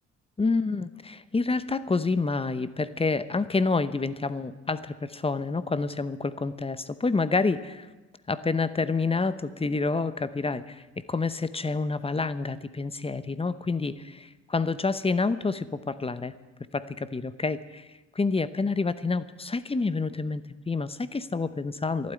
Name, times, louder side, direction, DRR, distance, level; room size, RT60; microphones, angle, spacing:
voice 1, 0.4-7.9 8.3-16.3 16.7-17.9 18.1-22.1, left 3 dB, 20° left, 15 dB, 0.8 m, -28 dB
12.0 x 12.0 x 9.6 m, 1.2 s
cardioid pair, 90°, 30 cm